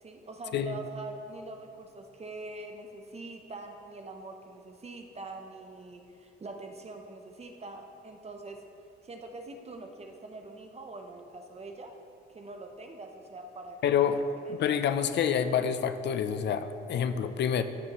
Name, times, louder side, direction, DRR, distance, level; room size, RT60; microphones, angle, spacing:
voice 1, 0.0-8.6 9.0-11.9 12.3-14.1 14.4-14.6, right 2 dB, 30° right, 4 dB, 0.7 m, -44 dB
voice 2, 13.8-14.2 14.5-17.6, left 8 dB, 60° left, 11 dB, 0.5 m, -27 dB
14.0 x 6.3 x 3.0 m, 2.6 s
cardioid pair, 90°, 20 cm